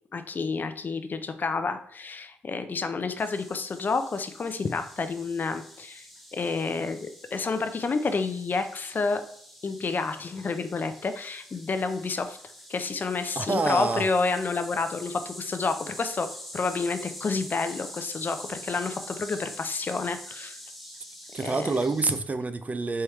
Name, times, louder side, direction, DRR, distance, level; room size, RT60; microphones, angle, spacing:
voice 1, 0.1-9.2 9.6-12.4 12.7-16.3 16.5-20.6 21.4-21.7, left 4 dB, 45° left, 0.5 m, -29 dB
sound 1, 3.2-22.2, equal, ahead, 0.9 m, -45 dB
voice 2, 13.4-14.1 21.3-23.0, right 3 dB, 35° right, 0.4 m, -27 dB
4.4 x 3.4 x 3.1 m
supercardioid pair, 50°, 4 cm